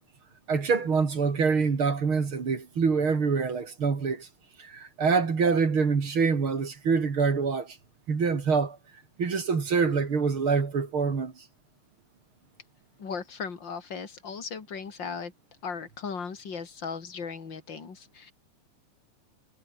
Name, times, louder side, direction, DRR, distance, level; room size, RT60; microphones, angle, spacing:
voice 1, 0.5-4.3 4.6-7.8 8.1-8.8 9.2-11.4, right 5 dB, 40° right, 3.5 m, -25 dB
voice 2, 13.0-15.3 15.6-18.3, left 5 dB, 35° left, 3.3 m, -37 dB
omnidirectional pair, 3.7 m